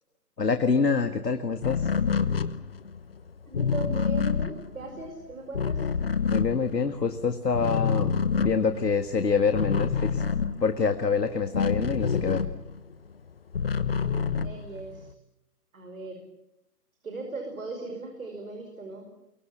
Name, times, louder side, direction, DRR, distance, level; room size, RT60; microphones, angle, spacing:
voice 1, 0.4-1.9 6.3-8.1 8.4-10.2 10.6-12.5, left 5 dB, 80° left, 8 dB, 1.9 m, -26 dB
sound 1, 1.6-7.2 7.5-12.9 13.3-15.1, left 6 dB, 35° left, 1.1 m, -28 dB
voice 2, 3.5-5.8 14.0-15.1 15.7-16.2 17.0-19.3, right 2 dB, 55° right, 4 dB, 5.4 m, -38 dB
28.5 x 23.5 x 7.4 m, 0.83 s
figure-of-eight pair, 155°, 48 cm